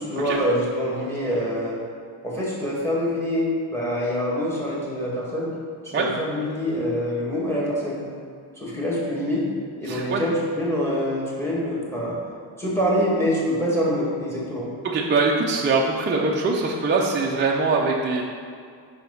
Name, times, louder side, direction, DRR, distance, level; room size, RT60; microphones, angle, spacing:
voice 1, 0.0-1.8 2.2-5.6 5.8-8.0 8.6-9.4 9.8-12.2 12.6-14.7, equal, 5° left, -6 dB, 1.8 m, -25 dB
voice 2, 9.8-10.2 14.8-18.2, right 3 dB, 25° right, -2 dB, 0.5 m, -22 dB
5.7 x 4.6 x 5.4 m, 2.2 s
cardioid pair, 140°, 48 cm